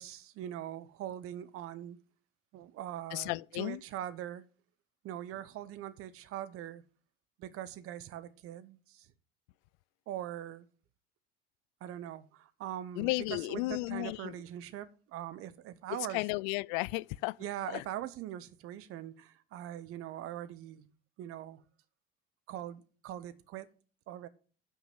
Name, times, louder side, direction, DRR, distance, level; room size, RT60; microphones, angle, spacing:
voice 1, 0.0-2.0 2.5-4.4 5.0-6.8 7.4-9.1 10.1-10.7 11.8-16.2 17.4-20.9 21.2-21.6 22.5-23.7 24.1-24.3, right 12 dB, 50° right, 1.0 m, -42 dB
voice 2, 3.1-3.8 13.0-14.4 16.1-17.4 17.7-17.8, left 23 dB, 60° left, 0.4 m, -34 dB
8.0 x 6.1 x 7.5 m
figure-of-eight pair, 65°, 29 cm